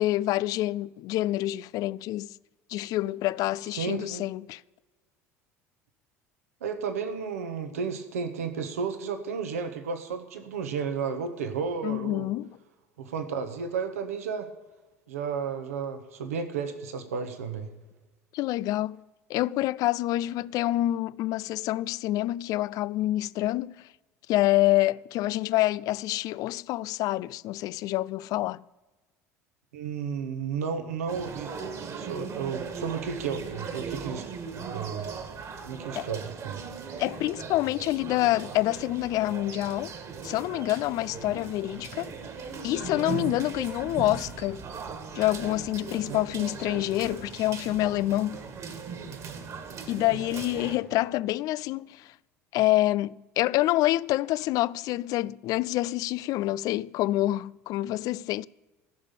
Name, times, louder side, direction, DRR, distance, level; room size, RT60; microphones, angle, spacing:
voice 1, 0.0-2.3 2.7-4.6 11.8-12.5 18.3-19.0 19.3-23.9 24.3-28.6 36.0-36.1 37.0-39.9 40.2-42.1 42.6-44.6 45.2-48.4 49.9-52.1 52.5-58.4, left 16 dB, 50° left, 0.4 m, -27 dB
voice 2, 3.7-4.2 6.6-12.3 13.0-14.5 15.1-17.7 29.7-31.5 31.9-34.2 34.5-35.1 35.6-36.6 46.0-46.2, right 6 dB, 75° right, 1.5 m, -33 dB
sound 1, 31.1-50.8, right 5 dB, 40° right, 2.3 m, -38 dB
15.0 x 6.6 x 9.0 m
figure-of-eight pair, 65°, 8 cm